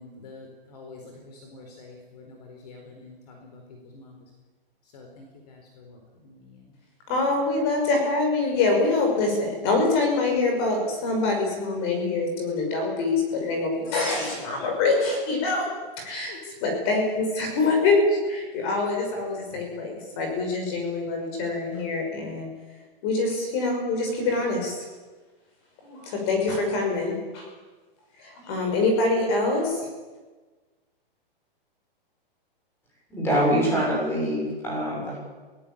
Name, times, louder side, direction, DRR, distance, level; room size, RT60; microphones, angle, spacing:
voice 1, 0.0-3.6 3.9-4.2 4.9-6.0 6.2-6.6 16.3-16.4, left 3 dB, 45° left, 2 dB, 4.4 m, -46 dB
voice 2, 7.1-15.7 16.0-16.3 16.6-22.5 23.0-24.9 25.8-27.5 28.2-29.8, left 3 dB, 25° left, 2 dB, 6.0 m, -25 dB
voice 3, 33.1-35.2, equal, 10° left, -3 dB, 7.2 m, -24 dB
23.5 x 18.0 x 8.9 m, 1.3 s
hypercardioid pair, 175°, 29 cm